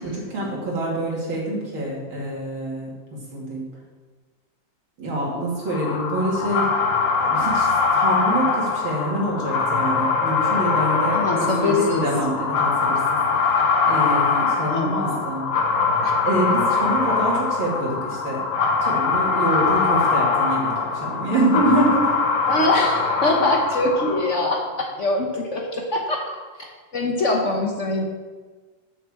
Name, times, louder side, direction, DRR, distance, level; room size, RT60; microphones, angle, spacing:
voice 1, 0.0-3.6 5.0-6.7 7.2-7.7 7.9-15.5 16.2-18.5 18.8-22.1, right 1 dB, 90° right, -4 dB, 3.2 m, -26 dB
sound 1, 5.7-24.6, left 4 dB, 70° left, 1.7 m, -22 dB
voice 2, 11.1-12.0 14.7-15.2 16.0-16.1 22.5-26.7 26.9-28.0, left 2 dB, 45° left, 1 dB, 1.1 m, -23 dB
6.9 x 6.2 x 7.3 m, 1.4 s
omnidirectional pair, 2.2 m